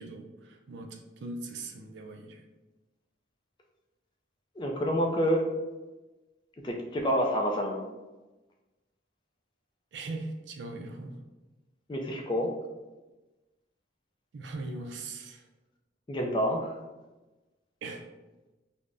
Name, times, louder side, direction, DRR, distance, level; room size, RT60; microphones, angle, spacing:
voice 1, 0.0-2.4 9.9-11.2 14.3-15.5 17.8-18.0, right 2 dB, 70° right, 4 dB, 0.4 m, -40 dB
voice 2, 4.6-5.5 6.6-7.9 11.9-12.5 16.1-16.8, equal, 25° left, 1 dB, 0.3 m, -28 dB
2.5 x 2.0 x 3.3 m, 1.1 s
head